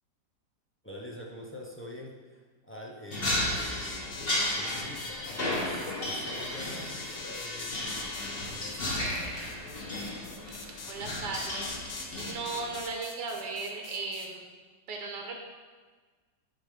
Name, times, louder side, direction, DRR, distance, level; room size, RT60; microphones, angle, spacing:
voice 1, 0.8-4.0 4.5-9.6, left 1 dB, 15° left, -2 dB, 0.4 m, -46 dB
sound 1, 3.1-12.8, left 1 dB, 35° left, 1.5 m, -34 dB
sound 2, 3.3-14.3, left 4 dB, 70° left, 1.2 m, -44 dB
Ratchet pawl / Tools, 7.6-8.3 8.7-9.9 10.4-11.4 11.9-12.9, right 4 dB, 55° right, 1.0 m, -51 dB
voice 2, 10.9-14.5 14.9-15.3, right 3 dB, 85° right, 2 dB, 1.5 m, -37 dB
10.0 x 3.5 x 5.0 m, 1.4 s
omnidirectional pair, 1.8 m